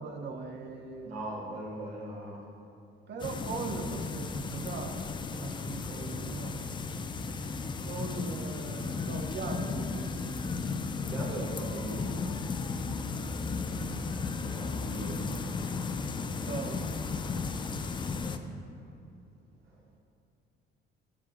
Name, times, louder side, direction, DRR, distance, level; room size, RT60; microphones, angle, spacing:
voice 1, 0.0-1.1 3.1-5.0 5.4-6.6 7.8-10.4 13.9-14.2 16.4-16.8, right 5 dB, 35° right, 3 dB, 0.8 m, -40 dB
voice 2, 1.0-2.4 11.0-12.2 14.5-15.2, right 1 dB, 80° right, -3 dB, 1.2 m, -39 dB
sound 1, 3.2-18.4, left 4 dB, 15° left, 0.3 m, -35 dB
9.6 x 7.3 x 2.5 m, 2.6 s
figure-of-eight pair, 50°, 30 cm